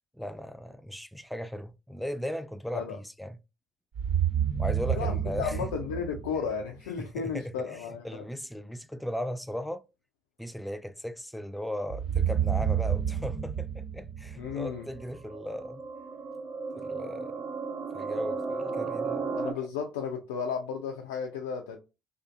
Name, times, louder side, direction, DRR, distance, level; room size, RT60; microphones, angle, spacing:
voice 1, 0.1-3.4 4.6-5.7 7.2-7.8 8.0-9.8 10.4-15.8 16.8-17.4 17.9-19.3, equal, 5° left, 0.3 m, -37 dB
sound 1, 3.9-6.9 11.9-15.1, right 9 dB, 65° right, 1.3 m, -30 dB
voice 2, 4.9-8.2 14.4-14.9 19.4-21.8, left 6 dB, 80° left, 0.3 m, -34 dB
sound 2, 14.4-19.5, right 4 dB, 40° right, 0.8 m, -35 dB
2.6 x 2.4 x 2.3 m
hypercardioid pair, 55°, 0 cm